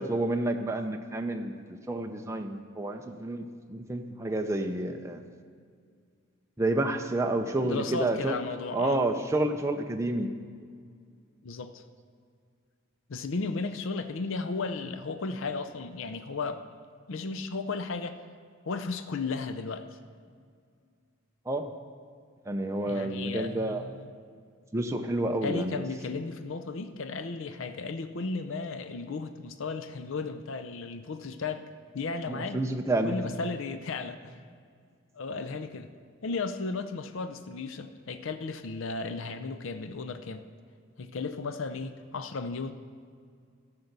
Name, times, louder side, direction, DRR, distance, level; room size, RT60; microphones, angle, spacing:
voice 1, 0.0-5.2 6.6-8.4 8.7-10.3 21.5-21.7 22.5-23.8 24.7-25.8 32.3-33.3, right 2 dB, 15° right, 4 dB, 0.5 m, -29 dB
voice 2, 7.6-9.0 11.4-11.8 13.1-16.6 17.1-18.2 18.7-19.9 22.9-24.1 25.4-31.6 31.9-32.6 33.0-34.4 35.1-35.9 36.2-40.5 41.0-42.7, left 4 dB, 65° left, 9 dB, 0.5 m, -34 dB
13.5 x 5.9 x 6.6 m, 2.1 s
head